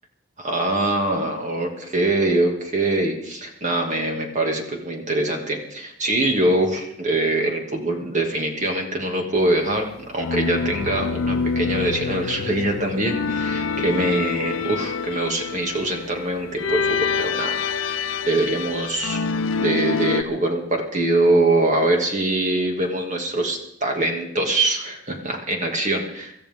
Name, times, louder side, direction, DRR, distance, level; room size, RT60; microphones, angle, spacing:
voice 1, 0.4-9.9 10.1-19.2 19.6-26.3, right 2 dB, 35° right, 2 dB, 2.3 m, -23 dB
sound 1, 10.2-20.2, left 5 dB, 65° left, 0.7 m, -26 dB
25.5 x 13.5 x 3.7 m, 0.73 s
head